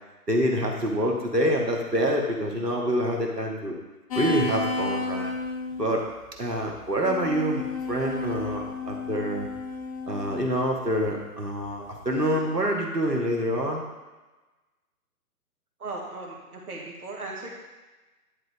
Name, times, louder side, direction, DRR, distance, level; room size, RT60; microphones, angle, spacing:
voice 1, 0.3-3.7 4.2-5.3 5.8-6.0 6.4-9.5 10.1-13.8, equal, 90° right, 0 dB, 1.7 m, -26 dB
sound 1, 4.1-5.9 6.8-10.9 12.1-12.4, left 3 dB, 25° left, 0.7 m, -32 dB
voice 2, 15.8-17.5, right 2 dB, 65° right, -1 dB, 2.0 m, -37 dB
10.5 x 3.8 x 3.6 m, 1.2 s
figure-of-eight pair, 130°, 47 cm